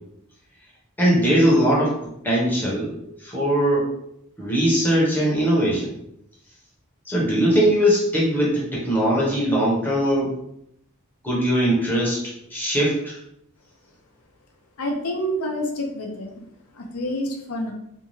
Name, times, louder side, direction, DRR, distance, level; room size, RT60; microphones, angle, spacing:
voice 1, 1.0-2.0 2.2-3.9 4.4-6.0 7.1-10.3 11.2-12.2 12.5-13.2, equal, 10° left, -5 dB, 0.6 m, -20 dB
voice 2, 14.8-16.3 16.7-17.7, equal, 85° left, 2 dB, 0.6 m, -27 dB
2.6 x 2.2 x 3.1 m, 0.77 s
head